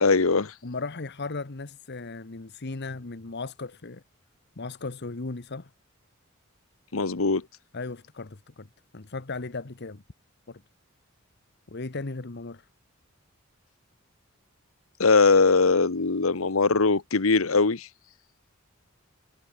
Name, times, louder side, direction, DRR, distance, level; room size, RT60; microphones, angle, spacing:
voice 1, 0.0-0.5 6.9-7.4 15.0-17.9, left 4 dB, 85° left, 1.1 m, -21 dB
voice 2, 0.6-4.0 4.6-5.7 7.7-8.7 8.9-10.0 10.5-10.6 11.7-12.7, left 3 dB, 55° left, 1.1 m, -36 dB
head